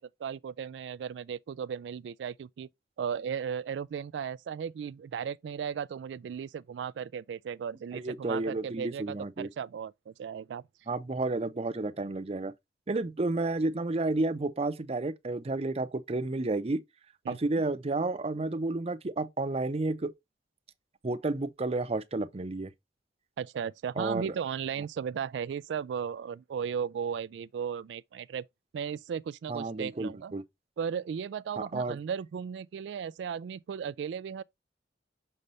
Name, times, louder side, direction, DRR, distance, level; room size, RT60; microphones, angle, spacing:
voice 1, 0.0-2.7 3.0-10.6 17.3-17.6 23.4-28.5 28.7-30.3 30.8-34.4, right 7 dB, 90° right, 0.3 m, -36 dB
voice 2, 7.9-9.5 10.9-12.5 12.9-16.8 17.3-20.1 21.0-22.7 24.0-24.3 29.5-30.4 31.6-32.0, right 2 dB, 35° right, 0.6 m, -31 dB
6.4 x 5.5 x 3.2 m
head